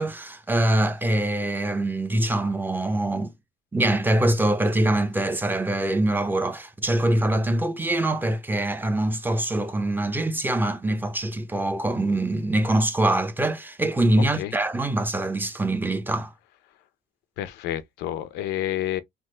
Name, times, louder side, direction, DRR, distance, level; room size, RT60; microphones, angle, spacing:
voice 1, 0.0-3.3 3.7-16.3, right 1 dB, 10° right, 0.5 m, -24 dB
voice 2, 17.4-19.0, left 12 dB, 90° left, 0.6 m, -29 dB
3.4 x 2.1 x 3.1 m
cardioid pair, 110°, 17 cm